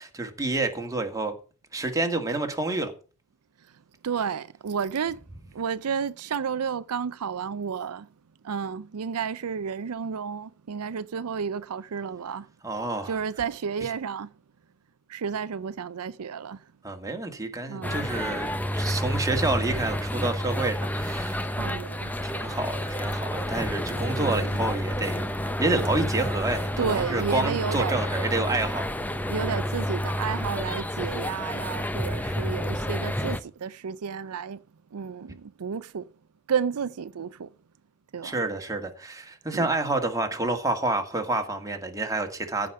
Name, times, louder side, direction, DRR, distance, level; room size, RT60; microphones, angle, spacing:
voice 1, 0.0-1.4 1.7-2.9 12.6-13.1 16.8-21.4 22.2-25.3 25.6-28.9 38.2-42.7, right 2 dB, 15° right, 1.8 m, -28 dB
voice 2, 4.0-5.2 5.5-8.1 8.4-12.5 13.1-14.3 15.1-16.6 17.7-18.1 21.5-22.1 24.2-24.5 26.8-28.0 29.3-34.6 34.9-36.0 36.5-37.5 38.1-38.3 39.5-39.7, right 6 dB, 80° right, 0.5 m, -31 dB
sound 1, 17.8-33.4, equal, 5° left, 0.7 m, -29 dB
15.0 x 5.1 x 7.4 m
head